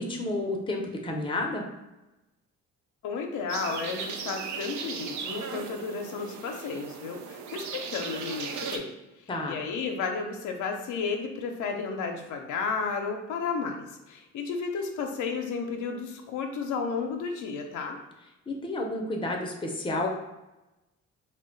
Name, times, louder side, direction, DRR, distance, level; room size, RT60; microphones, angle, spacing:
voice 1, 0.0-1.6 9.3-9.6 18.5-20.1, left 2 dB, 15° left, 1 dB, 0.6 m, -30 dB
voice 2, 3.0-8.9 9.5-18.0, left 5 dB, 80° left, 3 dB, 0.6 m, -33 dB
sound 1, 3.5-8.8, right 6 dB, 70° right, 0.5 m, -37 dB
2.8 x 2.2 x 3.8 m, 1.0 s
cardioid pair, 90°, 30 cm